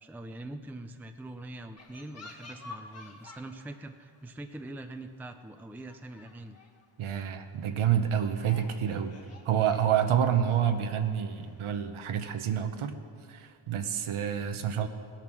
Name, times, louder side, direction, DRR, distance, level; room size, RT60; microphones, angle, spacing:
voice 1, 0.0-6.6, right 2 dB, 5° right, 7 dB, 0.5 m, -43 dB
sound 1, 1.8-3.6 3.9-4.3 5.0-5.1 5.5-5.6 5.9-6.8 7.3-7.4 8.0-11.6, left 3 dB, 30° left, 1.9 m, -50 dB
voice 2, 7.0-9.2 9.4-12.9 13.3-14.9, right 9 dB, 80° right, 7 dB, 1.0 m, -28 dB
17.5 x 9.1 x 6.1 m, 2.2 s
wide cardioid pair, 110°, 49 cm